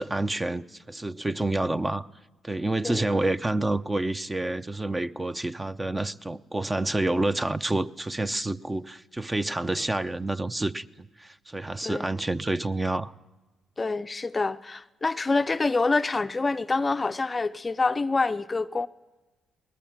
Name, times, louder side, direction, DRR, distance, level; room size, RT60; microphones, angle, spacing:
voice 1, 0.0-2.1 2.4-13.1, right 2 dB, 20° right, 0.7 m, -28 dB
voice 2, 13.8-18.9, left 3 dB, 30° left, 0.6 m, -26 dB
20.5 x 19.5 x 7.3 m
supercardioid pair, 60°, 0 cm